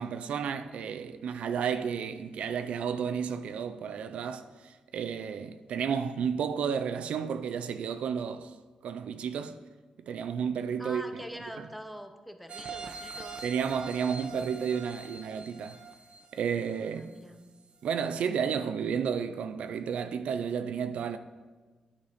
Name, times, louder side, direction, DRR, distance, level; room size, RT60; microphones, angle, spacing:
voice 1, 0.0-8.5 8.8-9.6 10.0-11.2 11.6-11.7 13.4-15.8 16.3-17.1 17.8-21.2, right 7 dB, 90° right, 0.4 m, -32 dB
voice 2, 10.8-13.5 16.8-17.4, equal, ahead, 0.7 m, -44 dB
sound 1, 12.5-17.2 17.7-17.8, right 4 dB, 65° right, 0.7 m, -44 dB
10.0 x 4.1 x 4.9 m
cardioid pair, 100°, 2 cm